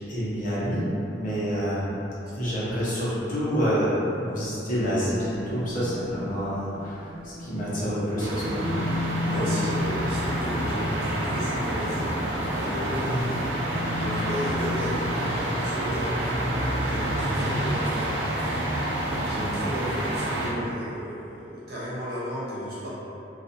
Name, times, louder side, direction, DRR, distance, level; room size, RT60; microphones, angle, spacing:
voice 1, 0.1-0.8 1.1-1.9 2.3-8.8 9.2-9.4 13.1-13.2, equal, 45° left, -9 dB, 0.9 m, -28 dB
voice 2, 2.1-2.6 8.2-8.6 9.2-12.2 12.5-13.6 14.0-15.0 15.6-16.4 16.8-18.1 18.6-18.7 19.2-22.9, equal, 60° right, -8 dB, 1.0 m, -34 dB
sound 1, 4.7-15.1, left 2 dB, 20° right, 1.3 m, -35 dB
sound 2, 8.2-20.5, right 1 dB, 75° right, 0.6 m, -28 dB
4.0 x 2.4 x 2.6 m, 2.9 s
head